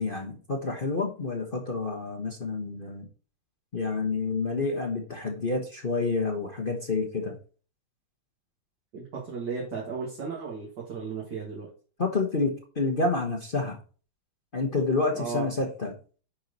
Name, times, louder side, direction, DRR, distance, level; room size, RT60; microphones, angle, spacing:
voice 1, 0.0-3.1 3.7-7.3 12.0-13.8 14.5-16.0, left 3 dB, 35° left, 2 dB, 0.9 m, -29 dB
voice 2, 8.9-11.7 15.2-15.5, right 5 dB, 55° right, -3 dB, 2.5 m, -35 dB
10.0 x 4.7 x 4.0 m, 0.38 s
omnidirectional pair, 2.4 m